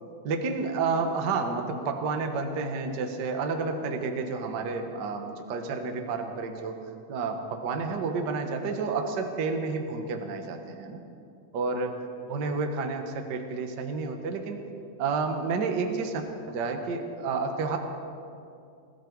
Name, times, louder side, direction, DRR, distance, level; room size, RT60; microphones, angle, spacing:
voice 1, 0.2-6.8 7.1-11.0 11.5-11.9 12.2-14.6 15.0-17.8, right 4 dB, 75° right, 4 dB, 0.9 m, -30 dB
20.0 x 15.5 x 4.7 m, 2.5 s
omnidirectional pair, 4.0 m